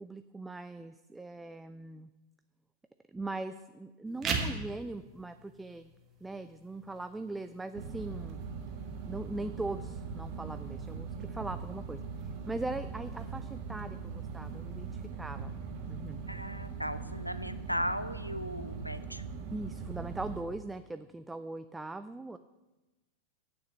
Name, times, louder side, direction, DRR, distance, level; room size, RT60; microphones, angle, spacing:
voice 1, 0.0-2.1 3.1-5.9 6.2-8.4 9.1-12.0 12.5-15.5 15.9-16.2 19.5-22.4, right 2 dB, 10° right, 11 dB, 0.3 m, -40 dB
sound 1, 4.1-15.1, right 5 dB, 30° right, 1.5 m, -44 dB
sound 2, 7.7-20.4, right 5 dB, 45° right, 1.4 m, -41 dB
voice 2, 16.3-19.2, equal, 90° right, 12 dB, 0.5 m, -36 dB
9.2 x 7.0 x 6.7 m, 1.1 s
figure-of-eight pair, 90°, 0 cm